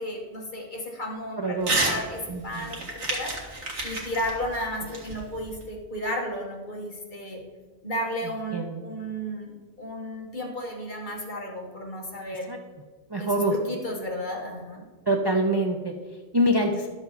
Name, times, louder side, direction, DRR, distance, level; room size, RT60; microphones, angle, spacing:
voice 1, 0.0-2.8 3.1-3.6 3.8-7.4 7.8-12.5 13.2-14.8, equal, 45° left, 0 dB, 1.6 m, -33 dB
voice 2, 1.4-2.0 2.3-2.9 8.5-8.9 12.5-12.6 13.1-13.7 15.1-16.9, right 1 dB, 30° right, 3 dB, 0.5 m, -26 dB
Crumpling crinkling / Tearing, 1.6-2.0 2.3-5.6, right 2 dB, 90° right, 1.9 m, -30 dB
11.5 x 6.9 x 4.1 m, 1.4 s
omnidirectional pair, 1.1 m